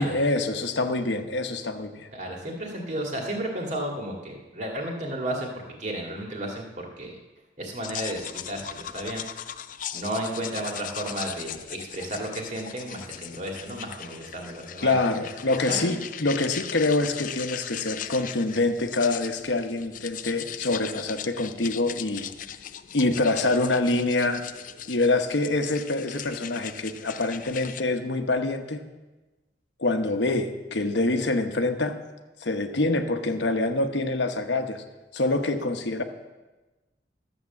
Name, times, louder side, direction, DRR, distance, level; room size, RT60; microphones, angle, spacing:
voice 1, 0.0-2.1 14.8-22.3 22.9-24.4 24.9-28.8 29.8-32.0 32.4-34.8 35.1-36.0, left 2 dB, 80° left, 7 dB, 1.0 m, -25 dB
voice 2, 2.1-5.5 5.8-6.7 7.0-7.1 7.6-9.2 9.9-14.9 15.7-15.9, right 1 dB, 40° right, 0 dB, 2.2 m, -33 dB
sound 1, 7.8-27.8, left 10 dB, 45° left, 0.4 m, -39 dB
12.0 x 7.5 x 7.2 m, 1.2 s
head